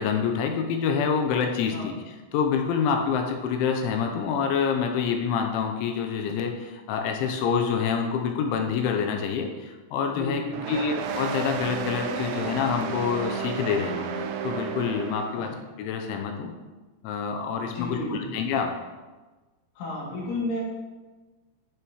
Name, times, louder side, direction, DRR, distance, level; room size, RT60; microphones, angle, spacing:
voice 1, 0.0-10.4 10.7-15.5 15.8-16.5 17.0-18.7, left 6 dB, 85° left, 3 dB, 2.8 m, -27 dB
voice 2, 10.1-10.6 15.3-15.5 17.7-18.3 19.8-20.6, left 1 dB, 70° left, -6 dB, 4.9 m, -32 dB
sound 1, 10.5-15.6, right 6 dB, 90° right, 2.6 m, -32 dB
12.5 x 7.1 x 3.1 m, 1.2 s
omnidirectional pair, 5.9 m